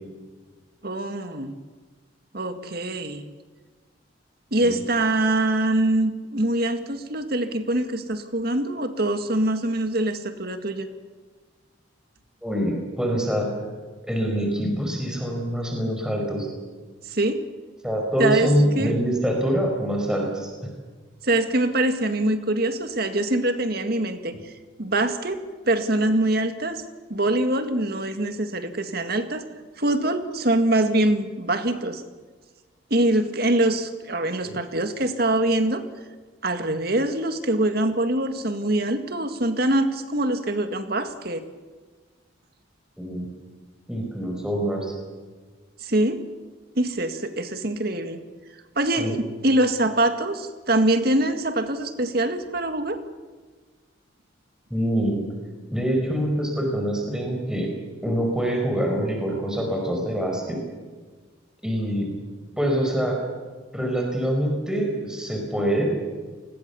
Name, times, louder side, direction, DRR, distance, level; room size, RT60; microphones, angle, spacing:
voice 1, 0.8-1.5 2.3-3.2 4.5-10.9 17.1-17.4 18.2-19.0 21.2-24.5 24.8-26.8 27.1-29.4 29.8-32.0 32.9-35.8 36.4-41.4 45.8-46.2 46.8-48.2 48.8-53.0, right 1 dB, 50° right, 8 dB, 2.0 m, -24 dB
voice 2, 12.4-13.5 14.1-16.5 17.8-20.5 34.4-34.6 43.0-43.3 43.9-44.9 49.0-49.1 54.7-55.2 55.7-57.7 58.0-60.6 61.6-62.1 62.6-63.2 63.7-65.9, equal, 5° right, 1 dB, 5.0 m, -25 dB
30.0 x 20.5 x 7.1 m, 1.4 s
head